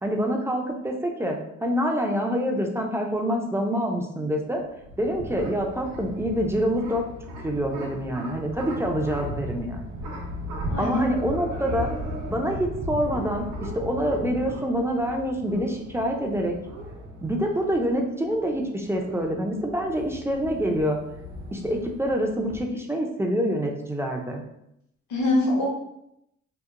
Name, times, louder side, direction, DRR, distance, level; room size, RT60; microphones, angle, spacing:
voice 1, 0.0-4.6 5.0-7.1 7.4-9.8 10.8-11.9 12.3-16.5 17.2-21.0 21.5-24.4, equal, 10° right, 1 dB, 0.3 m, -26 dB
sound 1, 4.6-22.6, equal, 80° right, 0.6 m, -37 dB
voice 2, 10.7-11.2 25.1-25.7, left 2 dB, 70° left, -2 dB, 1.0 m, -24 dB
2.8 x 2.0 x 2.3 m, 0.79 s
cardioid pair, 90°, 30 cm